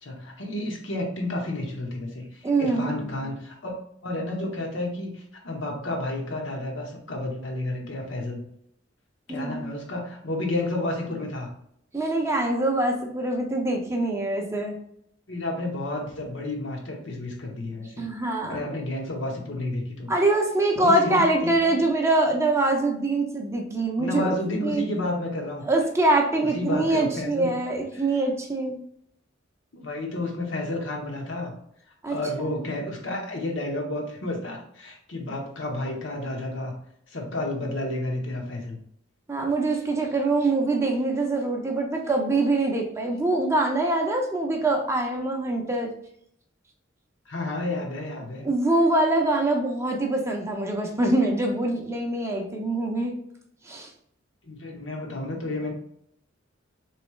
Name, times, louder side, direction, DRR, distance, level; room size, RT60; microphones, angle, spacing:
voice 1, 0.0-3.7 4.0-8.4 9.3-11.5 15.3-18.1 18.5-20.1 20.8-21.8 24.0-25.6 26.4-27.5 27.9-28.1 29.7-31.5 32.1-36.8 37.1-38.8 43.1-43.2 47.3-48.5 54.4-55.7, left 2 dB, 70° left, 0 dB, 1.0 m, -31 dB
voice 2, 2.4-3.1 9.3-9.7 11.9-14.7 18.0-18.6 20.1-24.3 24.6-24.8 25.7-28.8 32.0-32.2 39.3-45.9 48.4-53.1 53.7-53.9, right 2 dB, 15° right, 1 dB, 0.5 m, -24 dB
3.6 x 3.1 x 3.1 m, 0.69 s
head